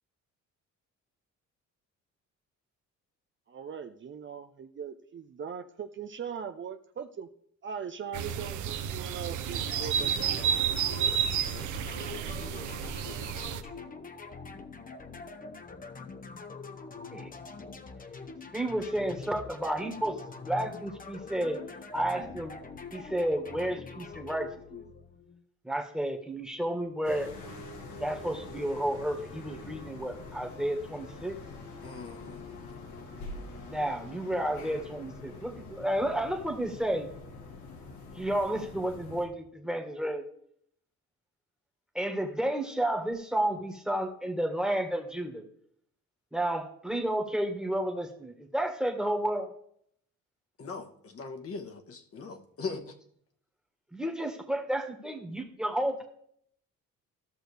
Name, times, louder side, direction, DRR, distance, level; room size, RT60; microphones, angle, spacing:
voice 1, 3.5-7.3 7.6-11.1, right 7 dB, 40° right, 7 dB, 0.6 m, -40 dB
sound 1, 8.1-13.6, right 8 dB, 75° right, 0.7 m, -31 dB
sound 2, 9.5-25.4, left 4 dB, 30° left, 0.9 m, -44 dB
voice 2, 18.5-20.2 20.4-21.6 21.9-22.5 22.9-24.8 25.6-27.3 28.0-31.4 33.7-37.1 38.2-40.2 42.0-45.4 46.3-49.5 53.9-56.1, right 1 dB, ahead, 4 dB, 1.6 m, -31 dB
sound 3, 27.0-39.3, left 3 dB, 70° left, 1.8 m, -45 dB
voice 3, 31.8-32.4 50.6-52.9, left 4 dB, 50° left, 4 dB, 1.4 m, -40 dB
14.5 x 6.3 x 3.4 m, 0.67 s
cardioid pair, 90°, 30 cm